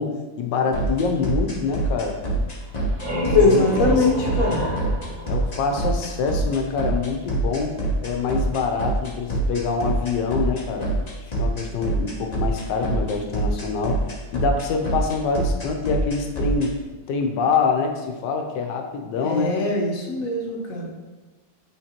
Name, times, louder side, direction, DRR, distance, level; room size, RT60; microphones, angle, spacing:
voice 1, 0.0-2.2 3.2-4.1 5.3-7.8 8.0-10.9 11.4-14.0 14.3-16.8 17.1-19.5, left 5 dB, 80° left, 4 dB, 1.4 m, -25 dB
sound 1, 0.7-16.7, right 3 dB, 35° left, 0.7 m, -25 dB
sound 2, 2.6-6.3, right 1 dB, 70° right, 2.4 m, -29 dB
voice 2, 3.3-4.6 19.2-20.9, left 3 dB, 55° left, -1 dB, 1.2 m, -21 dB
8.8 x 3.9 x 2.9 m, 1.2 s
omnidirectional pair, 1.9 m